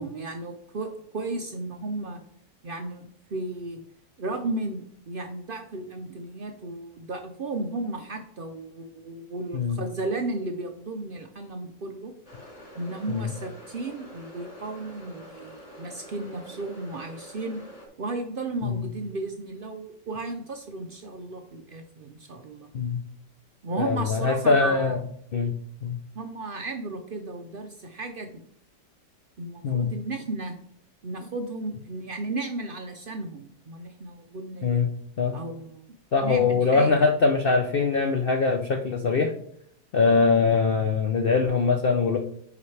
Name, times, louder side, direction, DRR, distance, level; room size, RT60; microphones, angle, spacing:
voice 1, 0.0-2.2 2.6-3.8 4.2-12.1 12.8-17.6 18.0-22.7 23.6-25.0 26.1-28.4 29.4-30.6 31.0-34.9 35.3-35.8 36.2-37.1, right 2 dB, 80° right, 5 dB, 0.4 m, -34 dB
sound 1, 12.3-17.9, equal, 40° left, 2.3 m, -46 dB
voice 2, 23.8-25.0 25.3-25.5 25.8-26.0 29.6-29.9 34.6-34.9 35.2-35.4 36.1-39.3 39.9-42.2, left 4 dB, 80° left, 4 dB, 0.5 m, -22 dB
9.7 x 5.0 x 3.3 m, 0.68 s
omnidirectional pair, 1.8 m